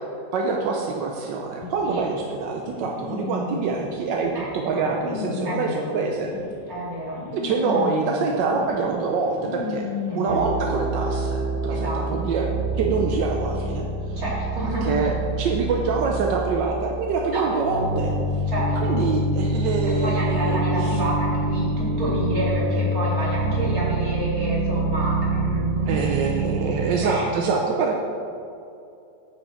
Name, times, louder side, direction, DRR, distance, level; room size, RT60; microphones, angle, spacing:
voice 1, 0.3-6.3 7.3-9.9 10.1-12.5 12.7-14.2 14.8-18.1 18.8-21.0 24.7-24.8 25.9-28.0, right 4 dB, 85° right, 1 dB, 1.4 m, -25 dB
sound 1, 1.6-10.7, left 5 dB, 85° left, 1.5 m, -34 dB
voice 2, 4.3-4.9 5.4-6.0 6.7-7.2 7.7-7.8 10.1-10.4 11.7-12.0 14.1-15.0 17.3-17.9 18.5-19.0 19.8-26.0 26.9-27.5, right 1 dB, 50° right, -6 dB, 2.9 m, -29 dB
sound 2, 10.3-27.0, right 1 dB, 70° right, 1.4 m, -26 dB
10.0 x 7.1 x 4.3 m, 2.6 s
omnidirectional pair, 1.9 m